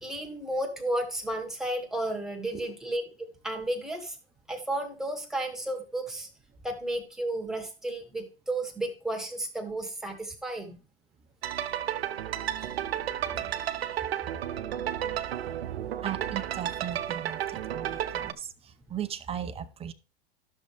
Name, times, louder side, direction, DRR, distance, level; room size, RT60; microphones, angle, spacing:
voice 1, 0.0-3.0 3.4-4.2 4.5-6.3 6.6-10.8, right 1 dB, ahead, 2 dB, 1.9 m, -33 dB
sound 1, 11.4-18.3, right 10 dB, 85° right, 0.7 m, -32 dB
voice 2, 16.0-19.9, right 9 dB, 20° right, 9 dB, 0.8 m, -37 dB
12.0 x 6.5 x 3.4 m, 0.33 s
hypercardioid pair, 110°, 30 cm